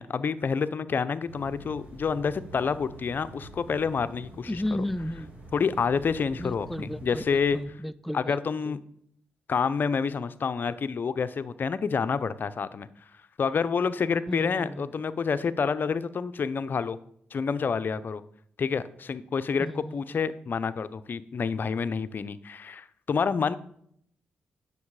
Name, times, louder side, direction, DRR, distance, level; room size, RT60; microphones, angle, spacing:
voice 1, 0.0-4.6 5.5-7.6 8.1-8.8 9.5-12.9 13.4-17.0 17.3-18.2 18.6-23.6, left 5 dB, 55° left, 13 dB, 0.6 m, -28 dB
sound 1, 1.3-7.6, right 2 dB, 40° right, 4.5 m, -46 dB
voice 2, 4.5-5.3 6.4-8.4 8.7-8.8 14.3-14.9 19.6-20.2, left 1 dB, ahead, 13 dB, 0.4 m, -34 dB
9.7 x 6.8 x 4.8 m, 0.68 s
cardioid pair, 60°, 4 cm